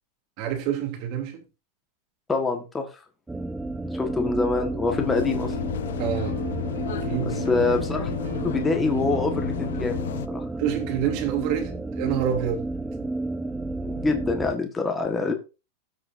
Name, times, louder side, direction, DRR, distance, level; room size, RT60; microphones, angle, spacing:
voice 1, 0.4-1.4 6.0-6.4 6.9-7.4 10.6-12.7, right 9 dB, 50° right, 3.0 m, -28 dB
voice 2, 2.3-2.9 3.9-5.5 7.5-8.1 8.4-10.0 10.3-10.4 13.8-15.3, left 3 dB, 15° left, 1.6 m, -25 dB
sound 1, 3.3-14.5, right 2 dB, 10° right, 0.7 m, -32 dB
sound 2, 4.9-10.3, left 9 dB, 80° left, 0.6 m, -31 dB
sound 3, 6.2-11.1, right 7 dB, 85° right, 3.0 m, -42 dB
18.5 x 6.3 x 2.7 m
hypercardioid pair, 125°, 0 cm